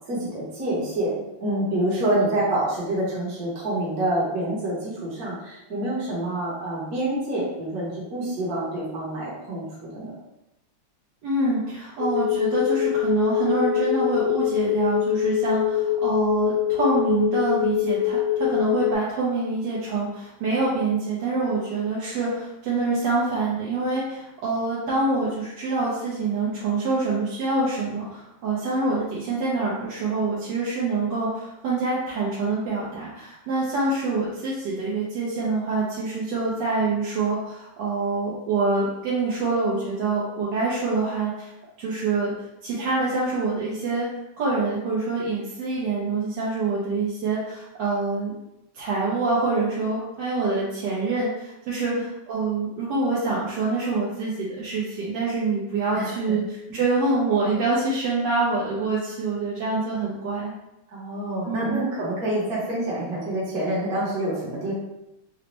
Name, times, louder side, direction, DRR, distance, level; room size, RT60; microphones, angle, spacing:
voice 1, 0.1-9.6 9.9-10.2 51.9-52.0 55.9-56.4 56.7-56.8 60.9-64.7, right 1 dB, 55° right, -7 dB, 1.4 m, -27 dB
voice 2, 11.2-41.5 41.8-42.3 42.6-44.1 44.4-48.3 48.7-60.5 61.5-61.9, right 3 dB, 70° right, -8 dB, 1.4 m, -26 dB
sound 1, 12.0-18.9, left 12 dB, 85° left, 1.4 m, -24 dB
4.0 x 2.1 x 2.9 m, 0.88 s
omnidirectional pair, 2.1 m